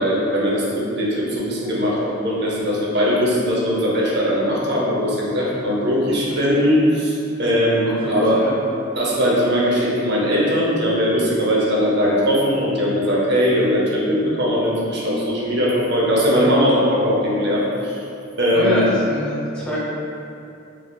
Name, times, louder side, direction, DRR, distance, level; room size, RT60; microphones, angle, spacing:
voice 1, 0.0-8.5 9.0-18.0 18.4-18.8, equal, 60° right, -5 dB, 0.6 m, -20 dB
voice 2, 7.9-8.6 18.5-19.8, equal, 5° left, -9 dB, 0.6 m, -25 dB
3.4 x 2.4 x 2.2 m, 2.6 s
head